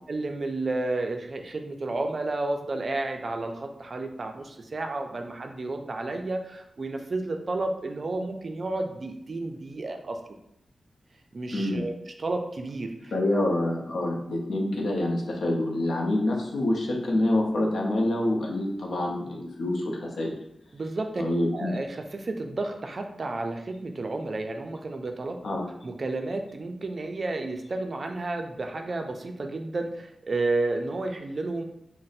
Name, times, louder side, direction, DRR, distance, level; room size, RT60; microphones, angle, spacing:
voice 1, 0.1-10.2 11.3-11.9 12.2-13.1 20.7-21.2 21.5-25.4 25.8-31.6, right 2 dB, 40° right, 4 dB, 0.3 m, -31 dB
voice 2, 11.5-11.8 13.1-20.3 21.2-21.8 25.4-25.7, left 1 dB, 80° left, -1 dB, 0.6 m, -26 dB
2.5 x 2.0 x 3.9 m, 0.79 s
wide cardioid pair, 150°, 0 cm